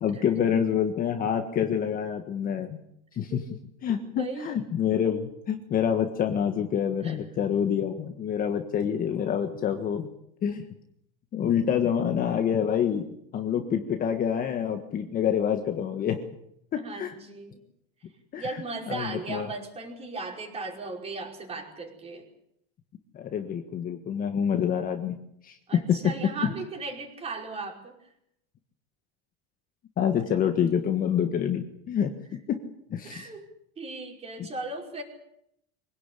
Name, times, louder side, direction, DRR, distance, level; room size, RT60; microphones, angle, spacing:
voice 1, 0.0-2.8 3.2-3.4 3.8-10.1 10.4-10.6 11.3-13.0 13.3-16.2 16.7-17.1 18.3-18.5 18.9-19.5 23.1-25.2 25.4-26.1 26.4-26.5 30.0-32.1 32.5-32.6 32.9-33.3 34.4-34.5, left 8 dB, 30° left, 6 dB, 1.6 m, -27 dB
voice 2, 4.1-4.6 7.0-7.2 13.6-13.7 16.7-17.6 18.4-22.2 25.7-28.0 33.0-33.5 33.8-35.0, right 3 dB, 20° right, 1 dB, 5.2 m, -37 dB
24.5 x 17.5 x 8.4 m, 0.75 s
cardioid pair, 160°, 29 cm